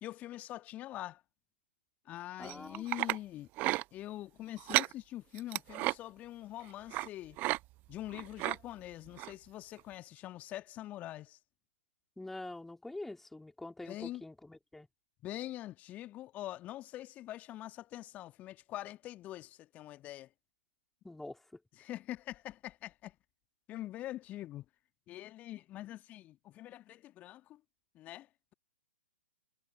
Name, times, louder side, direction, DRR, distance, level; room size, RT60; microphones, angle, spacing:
voice 1, 0.0-1.2 2.1-3.5 3.9-7.4 7.9-11.4 13.8-14.2 15.2-20.3 21.7-23.2 23.7-24.7 25.1-27.6 27.9-28.5, left 14 dB, 20° left, 1.9 m, -44 dB
voice 2, 2.4-2.8 12.2-14.9 21.0-21.4, left 2 dB, 5° left, 3.8 m, -45 dB
sound 1, 2.4-3.2 3.6-3.8 4.6-4.9 5.4-5.9 6.9-7.1 7.4-7.6 7.9-8.6 9.2-9.3 9.8-9.9, right 20 dB, 25° right, 1.1 m, -32 dB
figure-of-eight pair, 120°, 7 cm